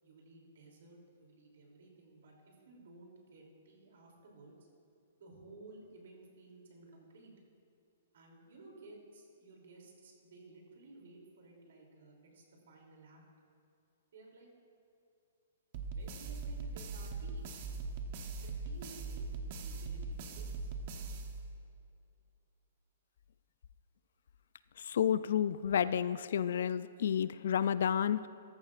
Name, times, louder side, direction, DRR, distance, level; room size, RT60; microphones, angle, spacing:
voice 1, 0.0-4.5 5.2-7.3 8.1-13.2 14.1-14.5 15.9-17.5 18.4-19.3 19.6-20.7, right 3 dB, 65° right, 0 dB, 2.9 m, -56 dB
sound 1, 15.7-21.8, right 4 dB, 35° right, 0.9 m, -41 dB
voice 2, 24.8-28.3, left 9 dB, 60° left, 15 dB, 0.3 m, -31 dB
14.0 x 14.0 x 2.5 m, 2.6 s
hypercardioid pair, 170°, 0 cm